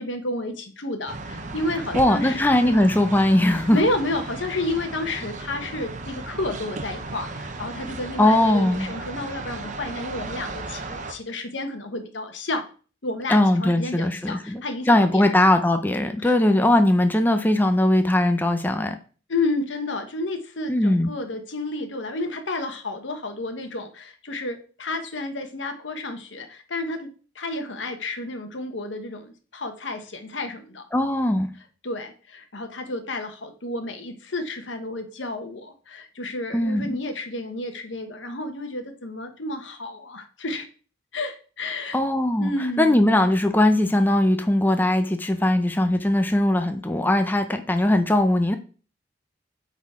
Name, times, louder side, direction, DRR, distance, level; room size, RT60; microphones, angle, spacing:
voice 1, 0.0-2.9 3.7-12.6 13.0-15.4 16.2-16.4 19.3-27.1 27.3-30.9 31.8-40.7 41.1-42.0 42.4-43.1, left 2 dB, 85° left, 7 dB, 1.2 m, -31 dB
sound 1, 1.1-11.1, right 3 dB, 40° right, 0.9 m, -35 dB
voice 2, 1.9-3.8 8.2-8.9 13.3-14.6 14.9-19.0 20.7-21.1 30.9-31.5 36.5-37.0 41.9-42.5 42.8-48.5, left 1 dB, 10° left, 7 dB, 0.6 m, -20 dB
8.6 x 4.1 x 4.2 m, 0.38 s
head